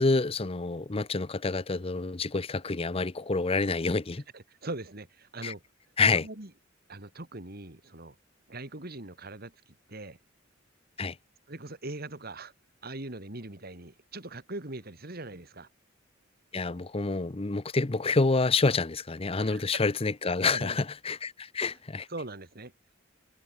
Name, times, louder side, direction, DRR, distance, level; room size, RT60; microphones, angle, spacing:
voice 1, 0.0-4.2 5.4-5.5 6.0-6.3 11.0-11.2 16.5-22.1, left 3 dB, 30° left, 0.7 m, -28 dB
voice 2, 4.3-5.6 6.2-6.5 6.9-8.2 8.5-10.2 11.5-12.5 12.8-15.7 19.4-19.6 20.4-20.8 22.1-22.7, right 2 dB, 50° right, 2.7 m, -41 dB
head